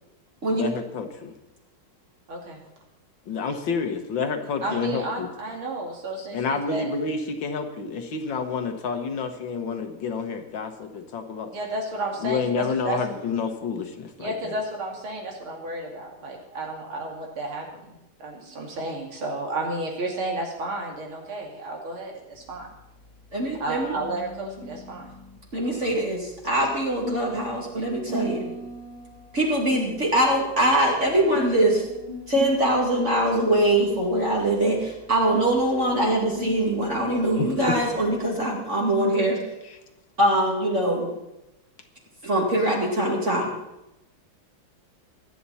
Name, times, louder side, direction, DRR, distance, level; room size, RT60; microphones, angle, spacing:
voice 1, 0.5-1.3 3.3-5.3 6.2-11.5 12.2-14.6 25.7-25.8 37.4-37.5 39.6-39.8, left 5 dB, 70° left, 6 dB, 1.9 m, -29 dB
voice 2, 2.3-2.6 4.6-6.9 11.5-13.0 14.2-22.7 23.6-25.2, right 2 dB, 85° right, 0 dB, 3.4 m, -32 dB
sound 1, 22.3-38.4, left 1 dB, 20° left, 2.2 m, -40 dB
voice 3, 23.3-23.9 25.5-28.5 29.3-31.8 32.3-39.4 40.2-41.1 42.2-43.5, right 1 dB, 35° right, -2 dB, 2.6 m, -23 dB
23.5 x 9.3 x 4.2 m, 0.93 s
omnidirectional pair, 2.2 m